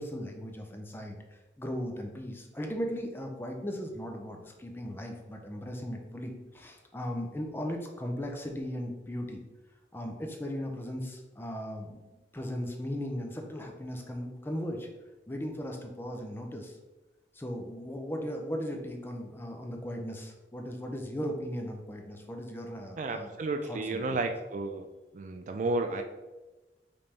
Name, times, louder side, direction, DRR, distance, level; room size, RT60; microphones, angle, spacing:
voice 1, 0.0-9.4 9.9-12.0 12.3-14.9 15.3-16.8 17.3-23.3 23.6-24.2, equal, 10° left, 2 dB, 0.5 m, -37 dB
voice 2, 23.0-24.8 25.1-26.0, right 2 dB, 45° right, 6 dB, 0.3 m, -32 dB
5.2 x 3.3 x 2.8 m, 1.1 s
head